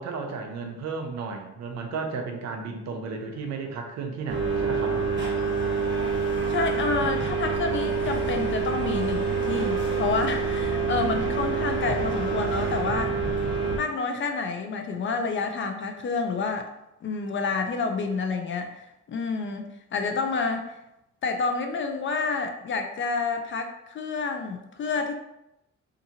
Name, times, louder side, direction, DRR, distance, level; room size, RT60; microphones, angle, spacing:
voice 1, 0.0-5.0, right 4 dB, 65° right, 4 dB, 0.6 m, -33 dB
sound 1, 4.3-13.8, right 4 dB, 40° right, 0.9 m, -26 dB
voice 2, 6.5-13.2 13.7-16.7 17.0-20.7 21.2-25.1, left 4 dB, 40° left, 5 dB, 0.4 m, -29 dB
2.7 x 2.5 x 2.7 m, 0.88 s
cardioid pair, 90°, 30 cm